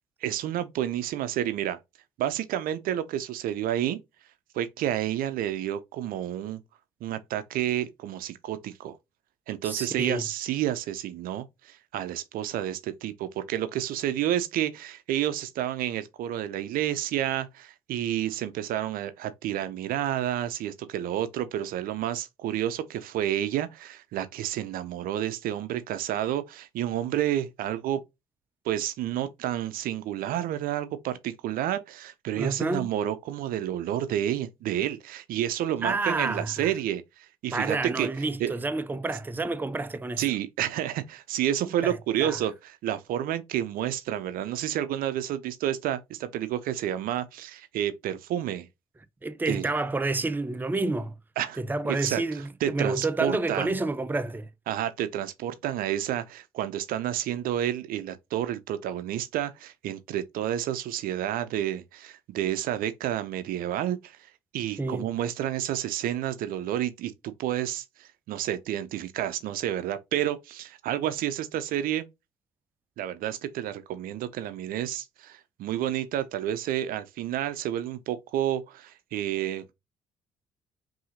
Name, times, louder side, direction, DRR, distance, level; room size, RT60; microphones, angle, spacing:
voice 1, 0.2-1.8 2.2-4.0 4.5-6.6 7.0-9.0 9.5-28.0 28.6-38.1 38.4-38.5 40.2-48.7 49.5-49.7 51.4-51.6 51.8-52.2 52.6-53.7 54.7-64.2 64.5-72.1 73.0-79.7, right 11 dB, 60° right, 0.6 m, -30 dB
voice 2, 9.6-10.3 32.4-32.9 35.8-36.7 37.5-40.3 41.8-42.4 49.2-51.1 51.6-54.5 64.8-65.1, right 2 dB, 10° right, 0.5 m, -29 dB
5.5 x 2.7 x 2.6 m
figure-of-eight pair, 45°, 17 cm